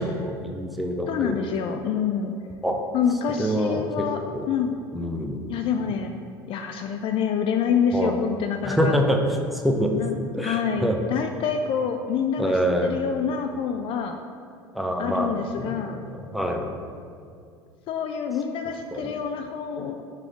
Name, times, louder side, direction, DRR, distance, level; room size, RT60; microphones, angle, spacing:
voice 1, 0.0-1.3 2.6-2.8 3.4-4.1 4.3-4.5 4.9-5.4 7.9-8.1 8.6-9.2 9.5-9.9 10.3-11.0 12.4-12.9 14.7-15.7 16.1-16.7 18.9-19.1, equal, ahead, 2 dB, 0.7 m, -25 dB
voice 2, 1.1-2.3 2.9-4.2 4.5-4.7 5.5-6.1 6.5-9.0 10.0-10.1 10.4-14.2 15.0-16.0 17.9-20.0, left 7 dB, 40° left, 6 dB, 0.4 m, -27 dB
5.7 x 4.9 x 4.8 m, 2.3 s
figure-of-eight pair, 70°, 14 cm